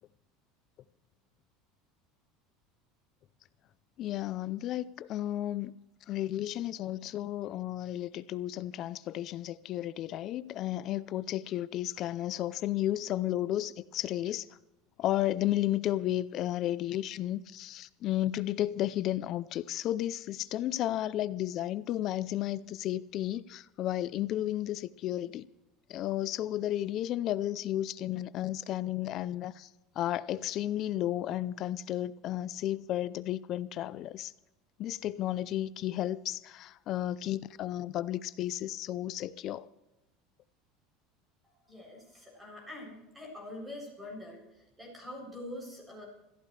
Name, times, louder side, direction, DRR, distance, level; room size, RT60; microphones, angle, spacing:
voice 1, 4.0-5.8 6.1-14.5 15.0-25.5 25.9-29.7 30.0-34.3 34.8-39.7, left 13 dB, 40° left, 0.5 m, -33 dB
voice 2, 41.4-46.1, left 1 dB, 10° right, 7.6 m, -45 dB
25.5 x 15.5 x 3.3 m
supercardioid pair, 150°, 0 cm